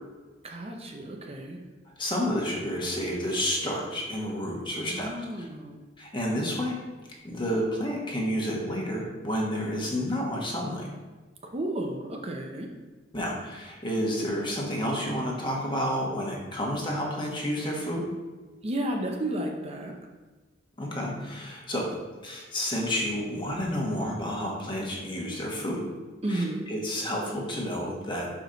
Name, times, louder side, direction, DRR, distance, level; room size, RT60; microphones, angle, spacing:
voice 1, 0.4-1.6 4.7-5.8 11.4-12.7 18.6-19.9 26.2-26.7, right 1 dB, 30° right, 2 dB, 0.7 m, -32 dB
voice 2, 2.0-5.5 6.0-6.8 7.2-10.9 13.1-18.1 20.8-21.9 22.2-25.8 26.3-28.3, equal, 25° left, -2 dB, 1.3 m, -30 dB
6.1 x 5.0 x 3.9 m, 1.3 s
head